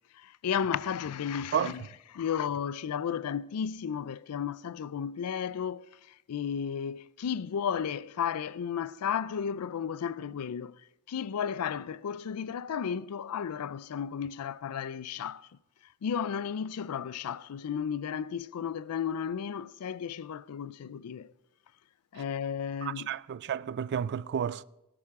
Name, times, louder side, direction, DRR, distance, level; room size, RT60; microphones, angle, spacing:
voice 1, 0.2-1.8 2.1-5.8 6.3-10.7 11.1-15.5 16.0-21.3 22.1-23.1, left 7 dB, 80° left, 0.4 m, -33 dB
voice 2, 22.8-24.6, right 8 dB, 50° right, 0.3 m, -31 dB
17.5 x 11.5 x 3.6 m
head